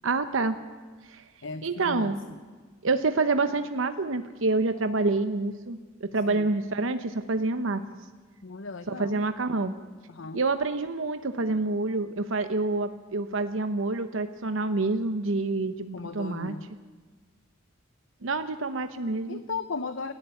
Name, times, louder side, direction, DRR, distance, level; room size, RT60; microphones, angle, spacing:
voice 1, 0.0-0.6 1.0-1.2 1.6-2.2 2.8-7.8 8.9-9.8 10.3-16.8 18.2-19.4, right 3 dB, 70° right, 10 dB, 0.9 m, -27 dB
voice 2, 1.4-2.4 6.3-6.5 8.4-9.2 10.1-10.4 15.9-16.7 19.3-20.1, left 4 dB, 65° left, 10 dB, 0.9 m, -36 dB
29.5 x 11.5 x 9.3 m, 1.5 s
head